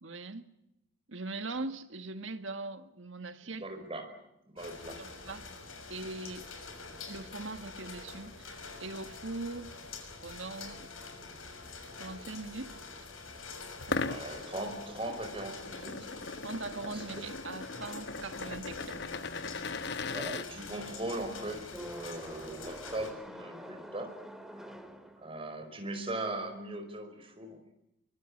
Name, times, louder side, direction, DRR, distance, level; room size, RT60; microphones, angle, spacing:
voice 1, 0.0-0.4 1.1-3.7 5.0-5.4 5.9-6.4 7.1-9.7 10.2-10.9 12.0-12.8 13.9-14.2 16.4-19.0, right 3 dB, 65° right, 1.8 m, -41 dB
voice 2, 3.4-4.1 4.5-5.0 13.9-16.5 16.8-17.2 20.1-24.1 25.2-27.6, right 1 dB, 25° right, 5.2 m, -40 dB
sound 1, 4.6-23.1, left 4 dB, 85° left, 6.4 m, -46 dB
sound 2, 13.8-20.5, left 4 dB, 60° left, 0.9 m, -39 dB
sound 3, 17.6-25.7, equal, ahead, 2.2 m, -49 dB
24.5 x 24.0 x 8.7 m
head